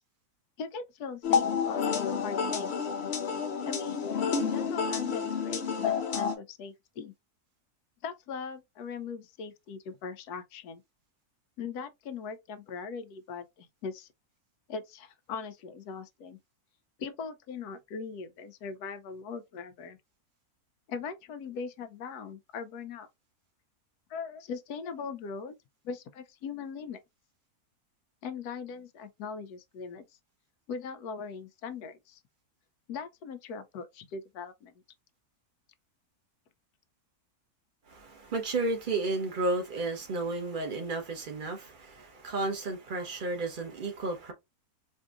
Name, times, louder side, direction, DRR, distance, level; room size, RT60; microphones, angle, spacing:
voice 1, 0.6-2.8 3.6-4.1 4.4-7.1 8.0-10.8 11.6-14.1 14.7-16.4 17.0-20.0 20.9-23.1 24.1-25.5 25.8-27.0 28.2-30.1 30.7-32.2 32.9-34.7, left 5 dB, 90° left, 1.2 m, -40 dB
sound 1, 1.2-6.3, left 6 dB, 50° left, 0.9 m, -29 dB
voice 2, 37.9-44.3, right 2 dB, 35° right, 1.2 m, -32 dB
4.4 x 2.6 x 2.4 m
omnidirectional pair, 1.6 m